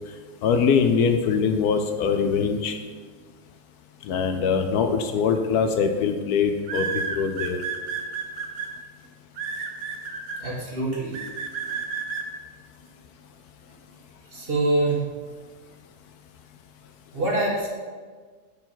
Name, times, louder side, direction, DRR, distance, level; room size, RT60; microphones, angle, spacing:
voice 1, 0.4-2.8 4.1-7.6, left 6 dB, 75° left, 6 dB, 1.1 m, -22 dB
sound 1, 5.2-5.4 6.6-8.7 9.4-10.4 11.1-12.2, right 6 dB, 65° right, 1.2 m, -30 dB
voice 2, 10.4-11.2 11.7-11.8 14.3-15.0 17.1-17.7, right 2 dB, 35° right, -3 dB, 1.5 m, -25 dB
6.7 x 4.6 x 5.7 m, 1.5 s
omnidirectional pair, 1.7 m